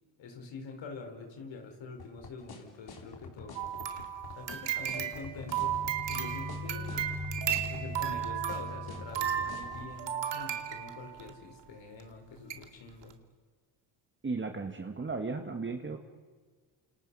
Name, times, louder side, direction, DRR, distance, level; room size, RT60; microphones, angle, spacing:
voice 1, 0.2-4.0 4.3-5.8 6.1-7.1 7.7-13.1, left 4 dB, 60° left, 3 dB, 4.7 m, -45 dB
sound 1, 2.0-9.9, left 5 dB, 45° left, 3.9 m, -46 dB
sound 2, 3.5-11.3 12.0-12.1 12.5-12.6 13.0-13.1, right 10 dB, 60° right, 2.6 m, -35 dB
sound 3, 4.7-9.4, left 3 dB, 20° left, 7.2 m, -41 dB
voice 2, 14.2-16.0, right 4 dB, 25° right, 5 dB, 1.8 m, -35 dB
29.0 x 27.5 x 5.6 m, 1.5 s
supercardioid pair, 80°, 50 cm